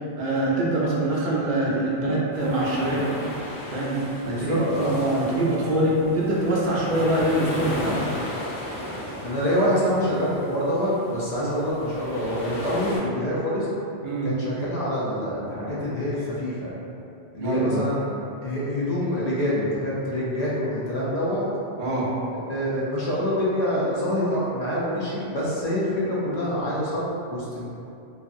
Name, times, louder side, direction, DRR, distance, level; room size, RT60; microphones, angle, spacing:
voice 1, 0.2-3.1 3.7-8.0 11.4-11.5 14.0-14.3 17.4-17.9 21.8-22.1, right 1 dB, 60° right, -5 dB, 0.5 m, -24 dB
sound 1, 2.3-13.0, left 1 dB, 75° left, 0.9 m, -35 dB
voice 2, 4.3-4.9 9.2-13.7 14.2-16.7 17.3-18.1 18.4-21.5 22.5-27.7, equal, 60° left, -8 dB, 0.4 m, -26 dB
2.6 x 2.3 x 2.5 m, 2.7 s
omnidirectional pair, 1.2 m